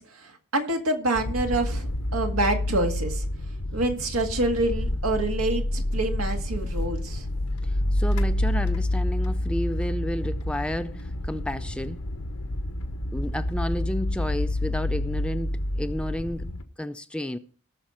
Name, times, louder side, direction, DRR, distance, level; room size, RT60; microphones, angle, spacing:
voice 1, 0.0-3.3 3.7-7.3, right 2 dB, 70° right, 1.9 m, -27 dB
sound 1, 1.1-16.6, left 1 dB, 90° left, 1.2 m, -28 dB
voice 2, 7.6-12.1 13.1-17.4, left 1 dB, 5° left, 0.4 m, -32 dB
19.0 x 6.4 x 4.4 m
head